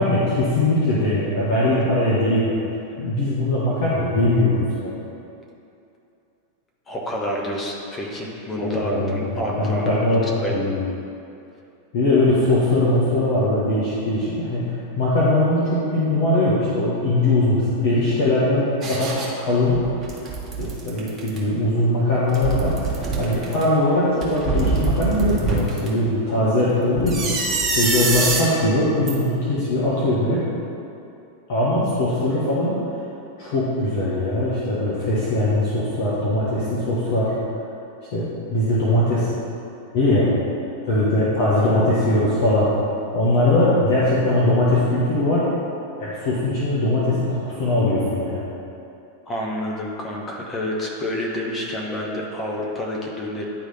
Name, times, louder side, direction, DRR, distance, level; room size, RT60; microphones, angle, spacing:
voice 1, 0.0-2.6 3.0-5.0 8.6-9.2 9.6-10.8 11.9-19.8 20.6-30.4 31.5-32.8 33.4-37.3 38.1-39.3 39.9-40.3 40.8-42.7 43.1-45.5 46.0-48.4, left 1 dB, 50° left, -8 dB, 1.1 m, -21 dB
voice 2, 6.9-10.6 49.3-53.5, left 1 dB, 20° left, -2 dB, 0.9 m, -28 dB
sound 1, 18.8-19.3 19.7-21.4 22.2-23.6 24.2-25.9 27.0-28.4 29.1-29.2, right 4 dB, 20° right, 1.4 m, -24 dB
9.7 x 3.2 x 4.0 m, 2.7 s
figure-of-eight pair, 90°, 0 cm